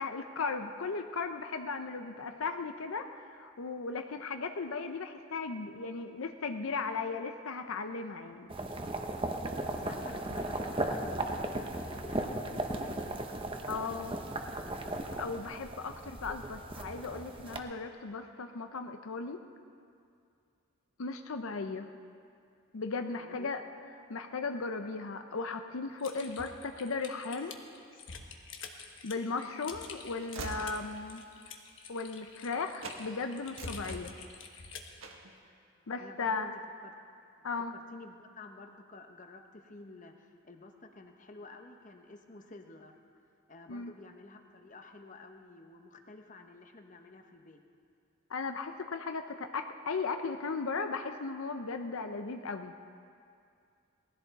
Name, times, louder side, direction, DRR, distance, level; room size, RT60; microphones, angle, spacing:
voice 1, 0.0-8.5 13.7-14.2 15.2-19.4 21.0-21.9 22.7-23.6 24.1-27.6 29.0-31.2 31.9-34.1 35.9-36.5 37.4-37.7 43.7-43.9 48.3-52.7, left 4 dB, 80° left, 7 dB, 0.6 m, -36 dB
sound 1, 8.5-17.6, right 2 dB, 25° right, 0.8 m, -36 dB
voice 2, 9.6-13.2 23.1-23.5 35.8-36.5 36.8-36.9 37.7-43.0 43.5-47.6, left 3 dB, 35° left, 5 dB, 0.9 m, -51 dB
Typing, 26.0-35.0, left 4 dB, 65° left, 1.2 m, -47 dB
Train / Slam, 28.9-32.5 32.8-33.0 33.4-34.6 35.0-35.3, right 3 dB, 75° right, 1.4 m, -46 dB
19.0 x 14.5 x 4.1 m, 2.4 s
head